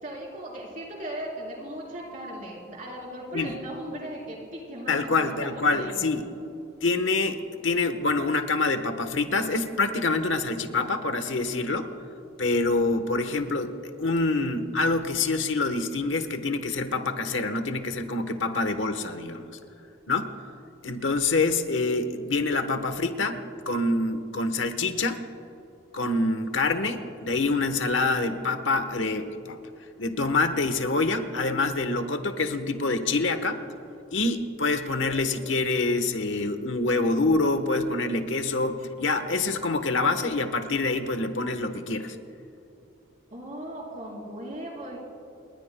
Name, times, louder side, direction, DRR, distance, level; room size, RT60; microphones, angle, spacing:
voice 1, 0.0-6.2 43.3-45.0, right 1 dB, 40° right, -2 dB, 4.0 m, -38 dB
voice 2, 4.9-6.2 6.8-11.9 12.4-19.5 20.1-20.3 20.8-25.2 25.9-29.6 30.0-33.6 34.1-42.2, left 3 dB, 75° left, 8 dB, 1.2 m, -26 dB
30.0 x 19.5 x 2.2 m, 2.8 s
head